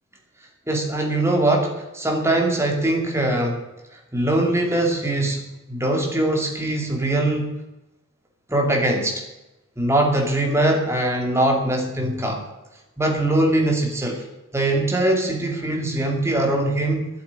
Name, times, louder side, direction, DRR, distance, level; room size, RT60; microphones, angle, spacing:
voice 1, 0.7-3.6 4.1-5.4 5.7-7.5 8.5-9.2 9.8-12.4 13.0-14.2 14.5-17.1, right 1 dB, 15° right, 1 dB, 2.5 m, -22 dB
11.0 x 8.3 x 10.0 m, 0.98 s
head